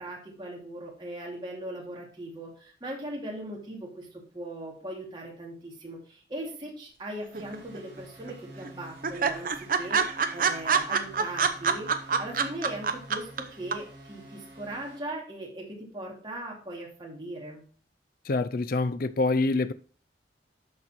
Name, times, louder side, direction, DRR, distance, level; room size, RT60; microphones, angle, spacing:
voice 1, 0.0-11.9 12.2-15.7 15.9-17.6, right 1 dB, 25° right, 2.6 m, -39 dB
sound 1, 7.3-8.0 8.3-8.4 8.6-8.7 9.0-13.4 13.7-13.8, right 6 dB, 50° right, 0.7 m, -25 dB
sound 2, 7.3-15.0, right 1 dB, 65° right, 4.2 m, -48 dB
voice 2, 18.3-19.7, left 3 dB, 50° left, 0.5 m, -26 dB
12.0 x 4.3 x 4.4 m
head